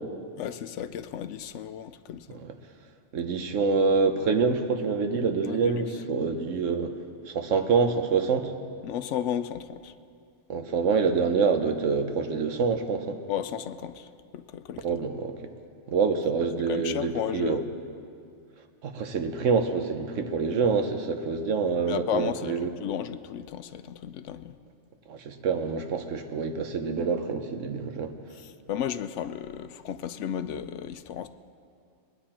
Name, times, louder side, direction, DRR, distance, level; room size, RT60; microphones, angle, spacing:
voice 1, 0.4-2.4 5.4-5.8 8.8-9.9 13.3-14.9 16.7-17.6 21.9-24.5 28.3-31.3, left 9 dB, 75° left, 11 dB, 0.9 m, -34 dB
voice 2, 3.1-6.9 7.3-8.5 10.5-13.2 14.8-15.4 15.9-17.6 18.8-22.7 25.1-28.1, right 5 dB, 90° right, 7 dB, 1.2 m, -26 dB
22.0 x 9.7 x 4.3 m, 2.3 s
omnidirectional pair, 1.3 m